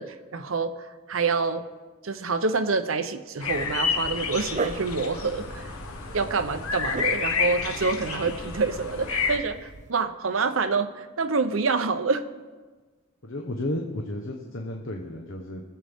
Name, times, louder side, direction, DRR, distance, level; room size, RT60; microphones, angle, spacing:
voice 1, 0.0-1.6 2.0-5.7 6.1-12.2, right 4 dB, 70° right, 9 dB, 0.8 m, -27 dB
sound 1, 3.4-9.4, left 5 dB, 85° left, 1.2 m, -30 dB
Dog, 4.0-9.9, right 3 dB, 35° right, 0.5 m, -39 dB
voice 2, 13.2-15.6, left 1 dB, 65° left, 2 dB, 1.0 m, -33 dB
21.0 x 7.6 x 3.6 m, 1.3 s
head